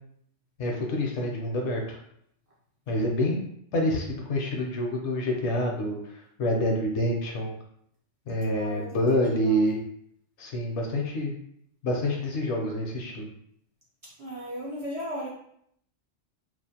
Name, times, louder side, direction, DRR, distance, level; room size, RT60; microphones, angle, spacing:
voice 1, 0.6-2.0 2.9-3.4 3.7-7.5 8.3-9.8 10.4-11.3 11.8-13.3, left 1 dB, 70° left, 0 dB, 0.8 m, -27 dB
voice 2, 8.5-8.9 9.5-9.6 14.2-15.3, equal, 50° right, -7 dB, 0.4 m, -35 dB
2.5 x 2.1 x 2.7 m, 0.69 s
omnidirectional pair, 1.3 m